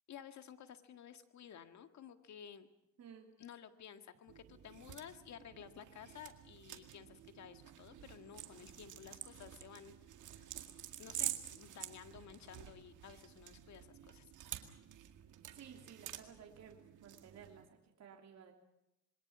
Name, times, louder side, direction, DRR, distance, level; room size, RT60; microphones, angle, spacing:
voice 1, 0.1-2.7 3.4-9.9 10.3-10.5 11.0-14.3, left 8 dB, 65° left, 8 dB, 1.9 m, -54 dB
voice 2, 3.0-3.3 15.5-18.5, right 7 dB, 60° right, 2 dB, 3.3 m, -56 dB
sound 1, 4.3-17.7, right 12 dB, 80° right, 2.0 m, -49 dB
26.5 x 22.0 x 6.2 m, 0.85 s
cardioid pair, 90°, 30 cm